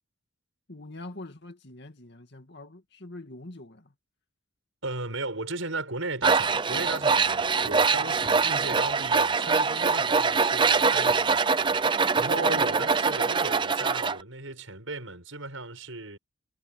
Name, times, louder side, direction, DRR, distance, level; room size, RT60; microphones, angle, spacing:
voice 1, 0.7-3.9 7.9-8.2 12.2-12.9, left 2 dB, 55° left, 2.3 m, -44 dB
voice 2, 4.8-11.4 11.9-16.2, right 3 dB, 70° right, 7.0 m, -36 dB
Tools, 6.2-14.2, right 4 dB, 25° right, 0.5 m, -24 dB
head